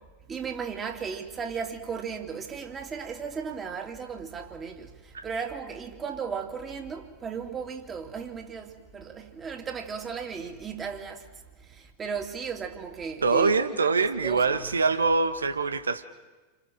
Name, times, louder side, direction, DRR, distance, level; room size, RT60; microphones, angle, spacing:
voice 1, 0.3-11.3 11.6-13.5 14.2-14.7, right 6 dB, 20° right, 3.2 m, -36 dB
voice 2, 13.2-16.0, right 4 dB, 75° right, 1.7 m, -24 dB
29.0 x 25.5 x 6.6 m
figure-of-eight pair, 90°, 0 cm